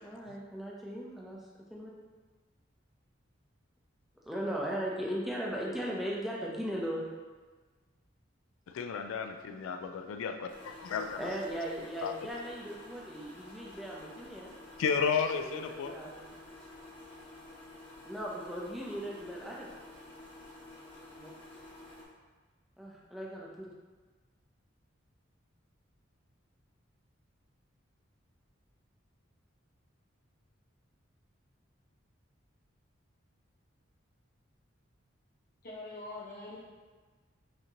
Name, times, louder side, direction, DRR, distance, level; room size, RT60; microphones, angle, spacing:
voice 1, 0.0-1.4 1.7-1.9 4.3-7.1 11.2-14.5 15.2-16.2 18.1-19.7 21.2-21.3 22.8-23.7, equal, ahead, -4 dB, 0.6 m, -38 dB
voice 2, 8.7-11.2 12.0-12.1 14.8-15.9, left 6 dB, 80° left, 8 dB, 0.3 m, -33 dB
sound 1, 10.5-22.0, left 2 dB, 25° left, 0.9 m, -51 dB
voice 3, 35.6-36.6, left 2 dB, 50° left, -7 dB, 1.1 m, -43 dB
5.8 x 2.9 x 2.9 m, 1.4 s
head